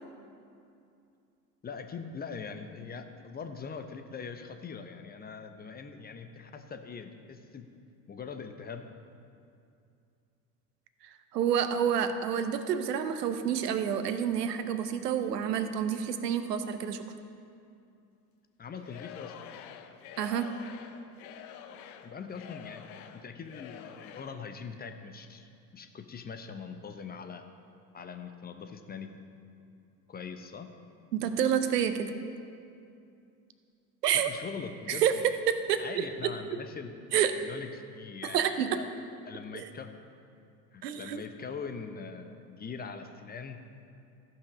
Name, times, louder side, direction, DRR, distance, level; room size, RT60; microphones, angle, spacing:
voice 1, 1.6-7.6 8.1-8.9 18.6-19.3 22.0-22.8 23.1-27.4 27.9-29.1 30.1-30.7 34.1-35.3 35.8-36.9 37.3-38.9 39.2-39.9 40.7-43.6, left 5 dB, 20° left, 7 dB, 0.8 m, -42 dB
voice 2, 11.3-17.0 20.2-20.6 31.1-32.1 34.0-34.3 34.9-36.6 37.1-37.4 38.2-38.8 39.5-39.7 40.8-41.2, right 8 dB, 75° right, 10 dB, 0.8 m, -29 dB
Singing / Crowd, 18.8-24.5, left 9 dB, 60° left, 0.8 m, -48 dB
14.5 x 5.6 x 5.0 m, 2.5 s
figure-of-eight pair, 70°, 48 cm